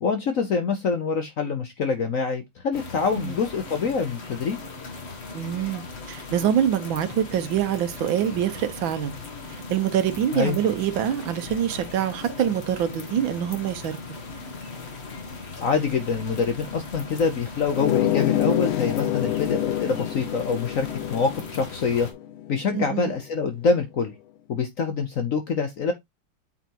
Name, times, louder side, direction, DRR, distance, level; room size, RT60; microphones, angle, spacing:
voice 1, 0.0-4.6 10.3-10.6 15.6-22.1 22.5-24.1 24.5-25.9, left 5 dB, 55° left, 1.0 m, -25 dB
sound 1, 2.7-22.1, left 3 dB, 35° left, 1.4 m, -38 dB
voice 2, 5.3-9.2 9.5-14.0 22.7-23.1, right 10 dB, 75° right, 1.6 m, -25 dB
sound 2, 17.7-23.0, left 12 dB, 85° left, 1.5 m, -27 dB
8.4 x 4.0 x 2.9 m
omnidirectional pair, 2.2 m